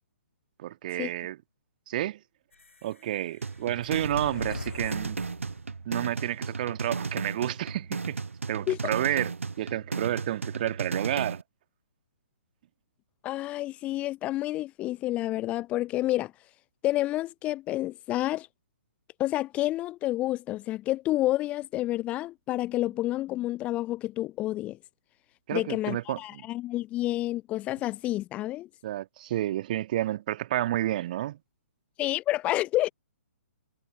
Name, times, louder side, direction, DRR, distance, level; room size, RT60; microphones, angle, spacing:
voice 1, 0.6-1.4 1.9-2.2 2.8-5.2 5.9-8.2 8.5-11.4 25.5-26.4 28.8-31.4, right 13 dB, 40° right, 1.9 m, -30 dB
sound 1, 2.5-6.0, left 3 dB, 70° left, 6.9 m, -42 dB
sound 2, 3.4-11.4, right 4 dB, 70° right, 1.2 m, -34 dB
voice 2, 13.2-16.3 16.8-18.5 19.2-24.8 25.5-28.7 32.0-32.9, left 16 dB, 15° left, 0.5 m, -29 dB
figure-of-eight pair, 125°, 7 cm